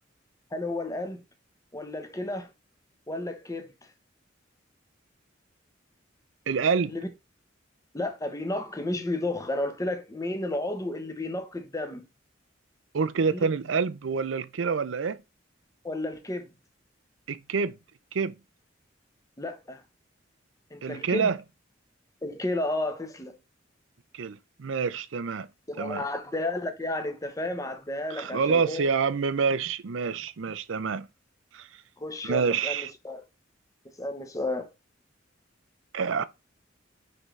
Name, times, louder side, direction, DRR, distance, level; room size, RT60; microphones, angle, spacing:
voice 1, 0.5-1.2 1.7-2.5 3.1-3.7 6.9-7.1 7.9-12.0 13.3-13.5 15.8-16.5 19.4-19.8 20.7-21.3 22.2-23.4 25.7-28.9 32.0-33.2 33.8-34.7, left 2 dB, 15° left, 0.9 m, -32 dB
voice 2, 6.5-6.9 12.9-15.2 17.3-17.8 18.1-18.3 20.8-21.4 24.1-25.5 25.8-26.0 28.2-31.1 31.5-31.7 32.2-32.9 35.9-36.3, right 5 dB, 80° right, 0.5 m, -27 dB
9.8 x 3.8 x 3.2 m
head